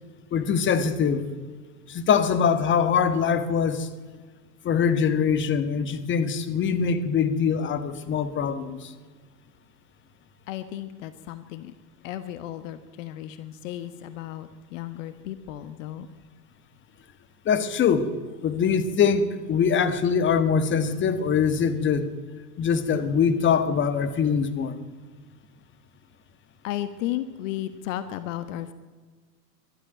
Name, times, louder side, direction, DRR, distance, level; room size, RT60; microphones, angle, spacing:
voice 1, 0.3-1.3 1.9-3.9 4.6-8.9 17.5-18.2 18.4-22.1 22.6-24.8, left 6 dB, 25° left, 12 dB, 1.7 m, -23 dB
voice 2, 10.5-11.7 12.0-16.1 26.6-28.7, left 13 dB, 50° left, 12 dB, 1.4 m, -34 dB
23.0 x 12.5 x 9.2 m, 1.4 s
hypercardioid pair, 105°, 49 cm